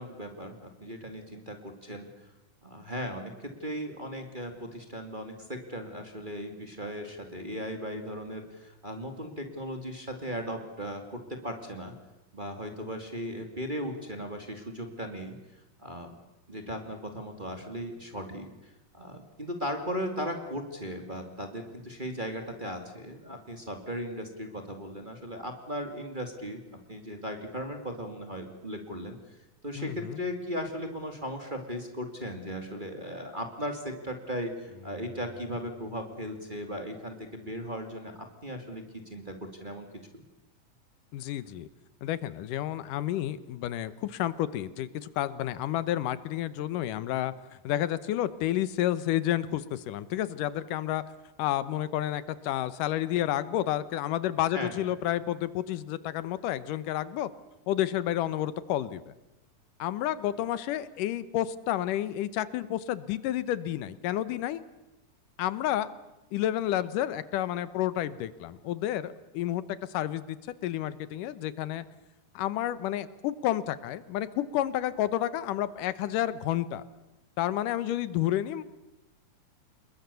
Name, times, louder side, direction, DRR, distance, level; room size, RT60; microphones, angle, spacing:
voice 1, 0.0-2.3 2.6-11.9 12.3-16.2 16.5-26.6 26.9-29.4 29.6-39.9 40.1-40.2 54.5-54.7, equal, 15° right, 4 dB, 2.1 m, -37 dB
voice 2, 29.8-30.2 41.1-41.7 42.0-47.3 47.6-51.0 51.4-57.3 57.7-59.1 59.8-64.6 65.4-65.9 66.3-70.4 70.6-71.9 72.4-76.8 77.4-78.6, left 12 dB, 85° left, 16 dB, 2.6 m, -30 dB
Bowed string instrument, 34.7-37.8 38.2-38.3, left 3 dB, 65° left, 4.2 m, -54 dB
27.5 x 21.5 x 6.9 m, 1.0 s
omnidirectional pair, 3.7 m